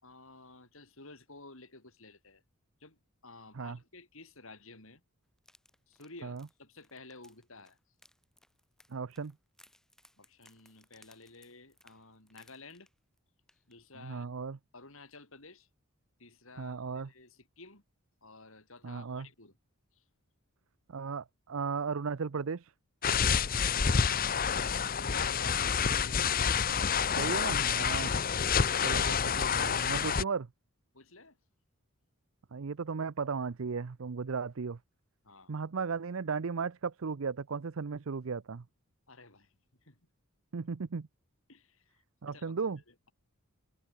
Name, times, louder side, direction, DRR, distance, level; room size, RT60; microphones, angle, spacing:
voice 1, 0.0-2.4 2.8-5.0 5.9-7.8 10.2-12.9 13.7-14.3 14.7-15.7 16.2-17.8 18.2-19.5 19.9-20.0 23.5-26.3 30.9-31.4 35.2-35.5 39.1-39.5 39.8-40.0 41.5-43.1, left 3 dB, 65° left, 6.3 m, -53 dB
sound 1, 5.4-13.2 13.5-13.7 14.1-14.2, left 1 dB, ahead, 4.8 m, -64 dB
voice 2, 8.9-9.3 14.0-14.6 16.6-17.1 18.8-19.3 20.9-22.7 27.2-28.1 28.8-30.5 32.5-34.8 35.5-38.6 40.5-41.1 42.2-42.8, right 5 dB, 65° right, 0.6 m, -35 dB
sound 2, 23.0-30.2, left 6 dB, 40° left, 0.8 m, -28 dB
head